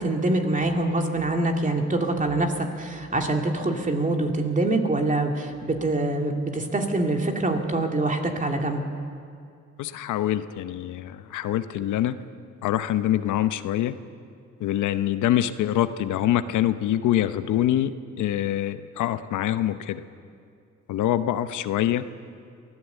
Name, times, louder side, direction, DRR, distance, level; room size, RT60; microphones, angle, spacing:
voice 1, 0.0-8.8, right 2 dB, 25° right, 3 dB, 2.7 m, -25 dB
voice 2, 9.8-12.2 12.6-14.0 14.6-20.0 20.9-22.1, left 12 dB, 80° left, 12 dB, 0.9 m, -25 dB
23.0 x 15.5 x 8.2 m, 2.4 s
cardioid pair, 90°, 30 cm